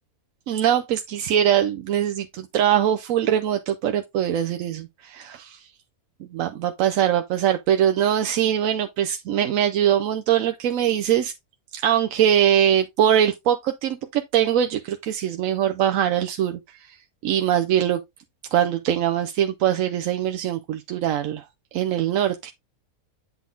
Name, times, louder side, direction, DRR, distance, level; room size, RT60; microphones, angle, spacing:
voice 1, 0.5-5.5 6.3-11.3 11.7-17.0 17.2-18.0 18.5-21.4 21.7-22.5, right 10 dB, 70° right, 1.0 m, -22 dB
8.4 x 4.0 x 3.8 m
omnidirectional pair, 1.6 m